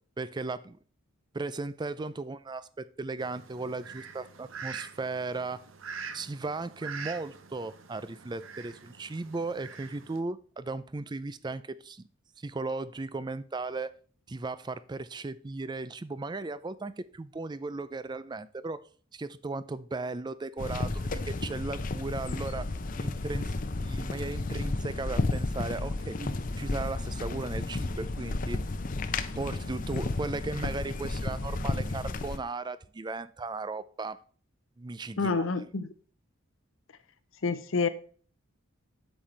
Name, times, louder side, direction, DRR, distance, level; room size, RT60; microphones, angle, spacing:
voice 1, 0.2-0.8 1.3-5.6 6.1-12.0 12.4-13.9 14.3-18.8 19.1-23.5 23.8-28.6 29.4-34.2 34.8-35.5, right 3 dB, 20° right, 0.4 m, -36 dB
Fowl, 3.2-10.2, right 6 dB, 75° right, 0.8 m, -44 dB
sound 1, 20.6-32.4, left 2 dB, 40° left, 0.7 m, -32 dB
voice 2, 35.2-35.9 37.4-37.9, left 4 dB, 75° left, 0.7 m, -28 dB
8.8 x 7.3 x 3.3 m
head